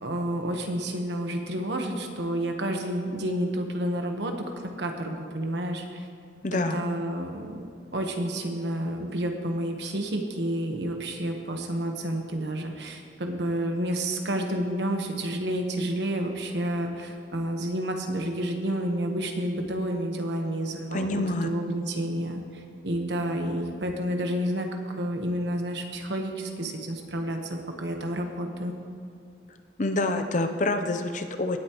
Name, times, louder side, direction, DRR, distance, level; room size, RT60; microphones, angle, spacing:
voice 1, 0.0-6.1 6.7-7.7 7.9-28.7, right 1 dB, 75° right, 4 dB, 1.2 m, -30 dB
voice 2, 6.4-6.8 20.9-21.5 29.8-31.6, left 2 dB, 45° left, 7 dB, 0.7 m, -27 dB
18.0 x 8.3 x 3.1 m, 2.4 s
head